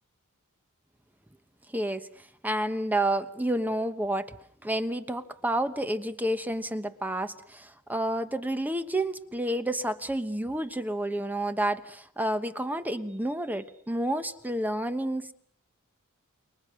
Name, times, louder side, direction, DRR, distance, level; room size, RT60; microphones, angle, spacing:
voice 1, 1.7-2.1 2.4-4.4 4.6-15.3, right 1 dB, 10° right, 10 dB, 1.1 m, -30 dB
28.5 x 23.5 x 6.4 m, 0.64 s
head